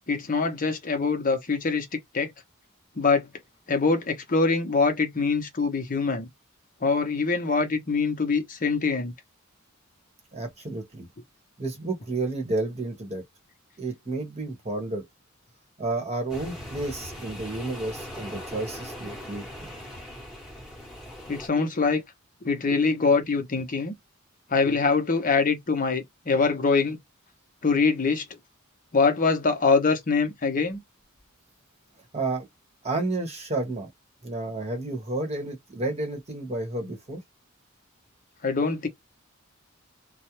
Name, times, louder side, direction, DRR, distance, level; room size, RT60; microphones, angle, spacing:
voice 1, 0.1-1.9 2.1-2.3 3.0-3.3 3.7-6.3 6.8-9.1 21.3-22.0 22.4-23.9 24.5-27.0 27.6-28.2 28.9-30.8 38.4-38.9, left 4 dB, 40° left, 0.7 m, -24 dB
voice 2, 10.3-11.1 11.6-13.2 13.8-15.1 15.8-19.7 32.1-32.5 32.8-33.9 34.2-37.2, right 2 dB, 30° right, 0.9 m, -31 dB
sound 1, 16.3-21.5, equal, 5° right, 1.0 m, -40 dB
2.4 x 2.0 x 2.8 m
head